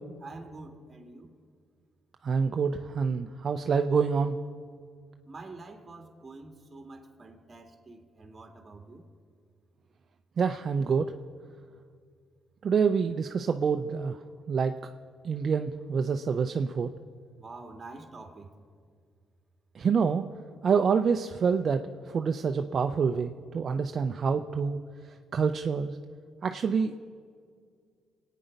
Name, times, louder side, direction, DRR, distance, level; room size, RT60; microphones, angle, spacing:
voice 1, 0.2-1.3 5.3-9.0 17.4-18.5, right 3 dB, 30° right, 4 dB, 2.1 m, -46 dB
voice 2, 2.2-4.4 10.4-11.1 12.6-14.2 14.5-14.7 15.2-16.9 19.7-20.2 20.6-24.8 25.3-26.0 26.4-26.9, right 6 dB, 50° right, 6 dB, 0.6 m, -27 dB
23.5 x 9.2 x 5.3 m, 2.1 s
cardioid pair, 90°, 0 cm